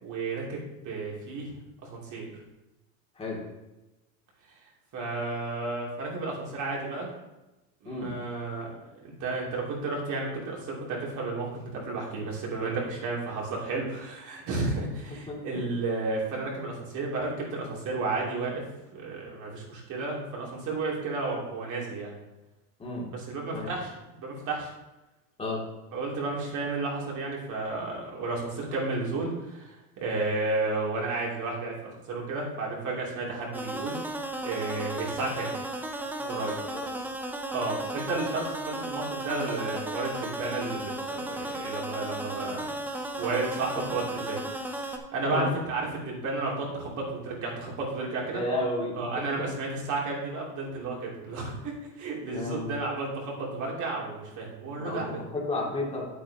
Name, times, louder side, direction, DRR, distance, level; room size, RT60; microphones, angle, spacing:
voice 1, 0.0-0.6 0.8-1.5 1.8-2.3 4.9-7.1 7.8-18.6 18.9-22.1 23.1-23.9 24.2-24.7 25.9-34.0 34.4-35.5 36.2-36.6 37.5-42.7 43.1-44.4 44.7-48.4 49.0-55.2, right 3 dB, 40° right, -3 dB, 3.0 m, -32 dB
voice 2, 15.1-15.7 22.8-23.1 23.5-23.7 25.4-25.6 36.7-36.9 43.7-43.8 45.2-45.5 48.3-49.5 52.3-52.8 54.8-55.0 55.3-56.1, left 2 dB, 15° left, -4 dB, 2.4 m, -32 dB
sound 1, 33.5-45.0, right 1 dB, 5° right, 0.4 m, -35 dB
9.0 x 8.3 x 2.9 m, 1.0 s
supercardioid pair, 125°, 45 cm